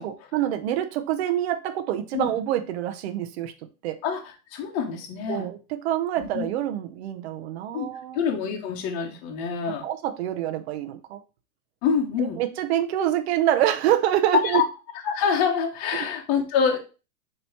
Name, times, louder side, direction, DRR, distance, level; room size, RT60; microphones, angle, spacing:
voice 1, 0.0-3.5 3.8-4.0 5.3-8.2 9.8-11.2 12.2-14.7, right 11 dB, 45° right, 8 dB, 0.7 m, -26 dB
voice 2, 4.0-5.5 6.2-6.5 7.7-7.9 8.1-9.8 11.8-12.4 14.4-14.6 15.0-16.8, left 6 dB, 30° left, 0 dB, 1.1 m, -26 dB
7.6 x 3.1 x 4.5 m, 0.32 s
hypercardioid pair, 155°, 45 cm